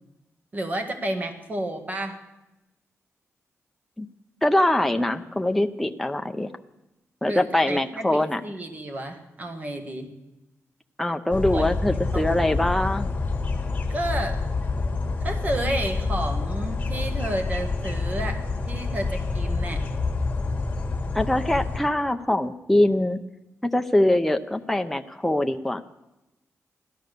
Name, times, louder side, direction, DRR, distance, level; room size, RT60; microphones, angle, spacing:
voice 1, 0.5-2.2 7.2-10.2 11.5-11.7 12.1-12.5 13.9-14.4 15.2-19.9, right 1 dB, 30° right, 6 dB, 1.8 m, -31 dB
voice 2, 4.4-6.5 7.2-8.4 11.0-13.1 21.1-23.2 23.6-25.8, left 1 dB, 5° left, 6 dB, 0.6 m, -23 dB
sound 1, 11.3-21.8, left 3 dB, 25° left, 1.9 m, -27 dB
16.5 x 12.0 x 6.7 m, 0.97 s
wide cardioid pair, 165°, 5 cm